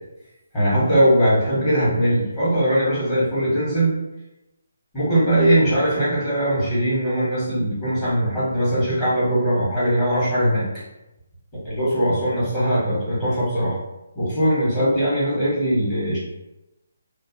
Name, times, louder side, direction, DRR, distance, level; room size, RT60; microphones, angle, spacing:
voice 1, 0.5-4.0 4.9-10.8 11.6-13.8 14.1-16.2, right 1 dB, 20° left, -10 dB, 1.1 m, -20 dB
2.3 x 2.1 x 2.6 m, 0.95 s
hypercardioid pair, 165°, 0 cm